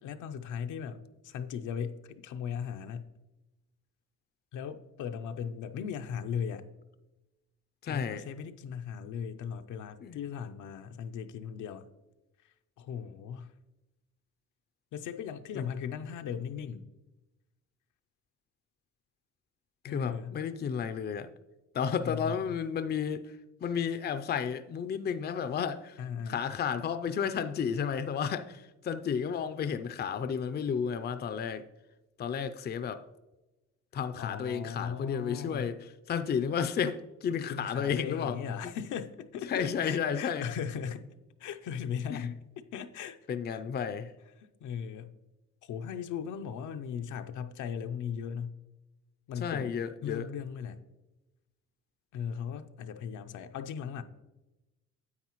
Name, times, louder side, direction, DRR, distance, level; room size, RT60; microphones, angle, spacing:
voice 1, 0.0-3.1 4.5-6.7 7.9-11.9 12.4-13.5 14.9-16.9 19.8-20.4 21.9-22.5 26.0-26.4 34.2-35.7 37.5-41.1 41.4-43.2 43.5-43.6 44.4-45.1 45.6-48.6 49.3-49.8 50.0-50.9 52.1-54.0, left 7 dB, 80° left, 0.6 m, -38 dB
voice 2, 7.8-8.2 10.0-10.2 15.5-15.7 19.8-21.3 21.7-23.4 23.6-26.0 26.3-31.6 32.2-33.0 33.9-35.8 36.1-38.4 39.5-40.5 42.1-42.3 43.3-44.1 49.4-50.3, left 7 dB, 35° left, 0.4 m, -32 dB
9.6 x 8.0 x 3.0 m
cardioid pair, 90°, 30 cm